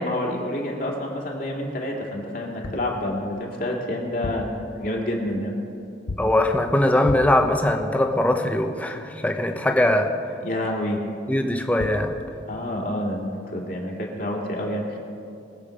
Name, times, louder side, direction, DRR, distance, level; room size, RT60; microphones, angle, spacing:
voice 1, 0.0-5.5 10.4-11.0 12.5-15.0, left 1 dB, 50° left, -1 dB, 2.2 m, -28 dB
sound 1, 2.6-3.0 4.1-4.6 6.1-6.4 7.1-7.5 11.5-11.6 11.8-12.1, left 2 dB, 85° left, 0.7 m, -33 dB
voice 2, 6.2-10.2 11.3-12.2, left 1 dB, 10° left, 5 dB, 0.8 m, -21 dB
21.5 x 7.3 x 5.1 m, 2.5 s
head